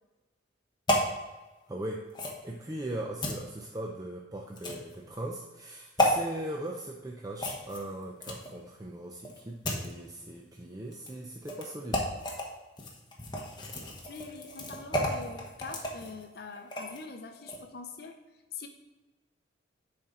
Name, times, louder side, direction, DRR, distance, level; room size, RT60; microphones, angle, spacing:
sound 1, 0.9-1.1 2.1-2.4 3.2-3.4 4.6-4.9 6.0-6.1 7.4-8.6 9.2-9.9 10.9-11.1 11.5-11.6 11.9-12.4 12.8-17.0 17.4-17.6, left 1 dB, 25° left, 1.1 m, -32 dB
voice 1, 1.7-2.0 2.4-12.0, right 1 dB, 20° right, 0 dB, 0.5 m, -39 dB
voice 2, 14.1-18.2 18.5-18.7, left 4 dB, 55° left, 5 dB, 0.6 m, -44 dB
10.5 x 4.3 x 3.7 m, 1.1 s
head